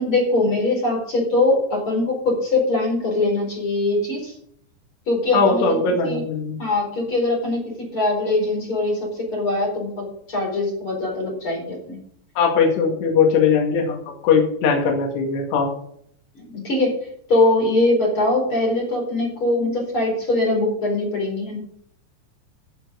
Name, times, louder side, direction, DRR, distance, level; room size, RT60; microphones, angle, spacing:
voice 1, 0.0-4.3 5.1-5.8 6.0-6.2 6.6-12.0 16.3-16.9 17.3-21.6, left 2 dB, 30° left, 0 dB, 4.7 m, -22 dB
voice 2, 5.3-6.6 12.4-14.0 14.2-15.7, left 5 dB, 65° left, 0 dB, 4.1 m, -19 dB
14.5 x 7.7 x 5.2 m, 0.66 s
omnidirectional pair, 5.4 m